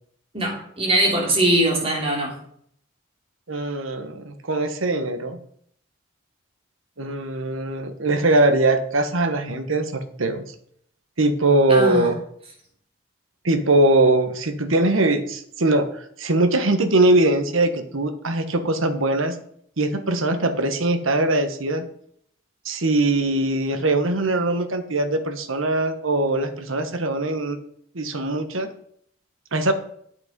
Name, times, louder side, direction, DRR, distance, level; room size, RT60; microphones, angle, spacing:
voice 1, 0.3-2.3 11.7-12.1, right 1 dB, 30° right, -1 dB, 3.1 m, -21 dB
voice 2, 3.5-5.4 7.0-10.4 11.2-12.2 13.4-19.4 19.8-21.8 22.6-27.6 27.9-28.7 29.5-29.7, right 2 dB, 80° right, 8 dB, 1.3 m, -21 dB
9.3 x 8.0 x 5.3 m, 0.66 s
head